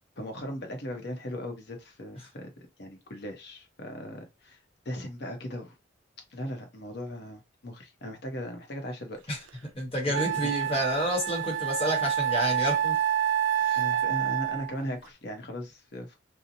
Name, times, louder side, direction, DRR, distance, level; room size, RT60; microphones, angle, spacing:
voice 1, 0.2-4.6 4.8-5.7 6.3-9.2 10.0-10.6 13.8-16.2, equal, 55° left, 0.7 m, -38 dB
Wind instrument woodwind instrument, 9.5-9.6 10.1-14.8, right 10 dB, 80° right, 0.3 m, -28 dB
voice 2, 9.7-13.0 13.6-13.8, equal, 30° left, 1.0 m, -29 dB
2.8 x 2.0 x 2.6 m
head